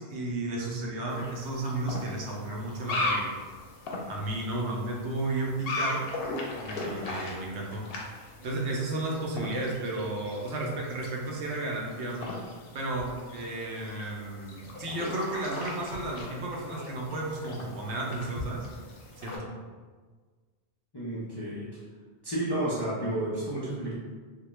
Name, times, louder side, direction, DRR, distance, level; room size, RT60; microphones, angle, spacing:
voice 1, 0.0-3.3 4.1-6.1 6.6-7.9 8.4-12.3 12.7-18.7 19.2-19.5, right 2 dB, 80° right, -1 dB, 0.9 m, -33 dB
sound 1, 1.1-19.4, left 2 dB, 65° left, 0.7 m, -38 dB
voice 2, 20.9-21.8 22.2-23.9, right 1 dB, 40° left, -9 dB, 0.3 m, -31 dB
2.3 x 2.1 x 3.0 m, 1.5 s
omnidirectional pair, 1.1 m